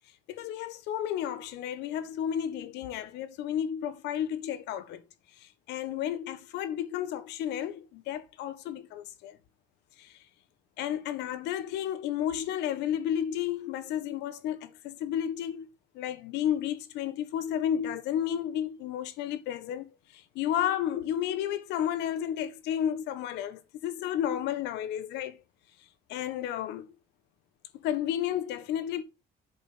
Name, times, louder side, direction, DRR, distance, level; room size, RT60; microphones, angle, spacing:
voice 1, 0.3-5.0 5.4-9.4 10.0-10.2 10.8-15.7 15.9-25.4 26.1-26.9 27.7-29.0, left 10 dB, 90° left, 1.5 m, -32 dB
8.3 x 6.7 x 5.6 m
cardioid pair, 110°, 17 cm